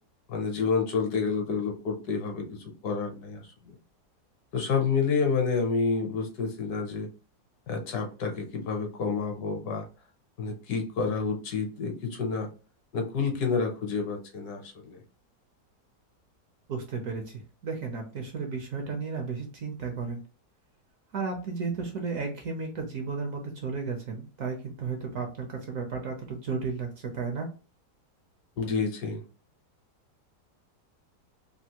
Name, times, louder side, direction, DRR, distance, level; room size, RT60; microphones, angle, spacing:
voice 1, 0.3-3.4 4.5-7.1 7.7-9.8 10.4-12.5 12.9-15.0 28.6-29.2, left 5 dB, 65° left, 3 dB, 1.3 m, -29 dB
voice 2, 16.7-20.2 21.1-27.5, right 4 dB, 65° right, 3 dB, 0.9 m, -33 dB
3.4 x 2.5 x 2.8 m, 0.35 s
omnidirectional pair, 1.9 m